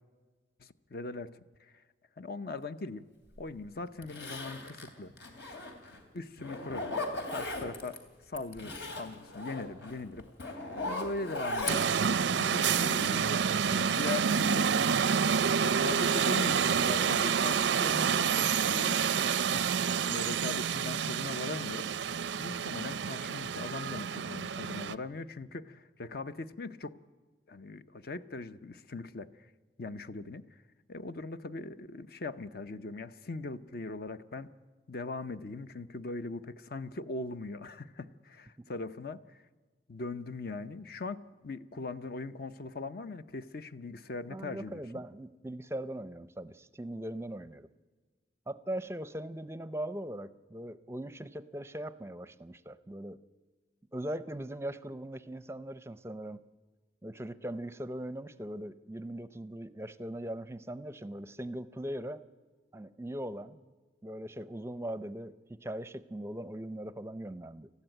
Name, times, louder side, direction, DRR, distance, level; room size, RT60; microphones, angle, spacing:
voice 1, 0.6-1.3 2.2-3.0 3.4-5.1 6.1-6.9 7.3-8.0 8.3-10.5 10.8-13.3 13.7-14.7 15.6-21.9 22.4-27.0 27.5-29.3 29.8-30.4 30.9-34.5 34.9-39.4 39.9-44.8, left 3 dB, 55° left, 12 dB, 0.7 m, -40 dB
Zipper (clothing), 3.4-3.5 4.0-6.0 6.4-8.0 8.3-13.5 13.9-15.1 15.5-15.9 16.3-16.4, left 2 dB, 80° left, 3.0 m, -39 dB
sound 1, 11.7-25.0, right 7 dB, 85° right, 0.5 m, -28 dB
voice 2, 44.3-47.7 48.5-53.2 53.9-56.4 57.0-62.2 62.7-63.6 64.0-67.7, right 1 dB, 15° right, 15 dB, 0.5 m, -40 dB
20.0 x 14.5 x 9.0 m, 1.4 s
head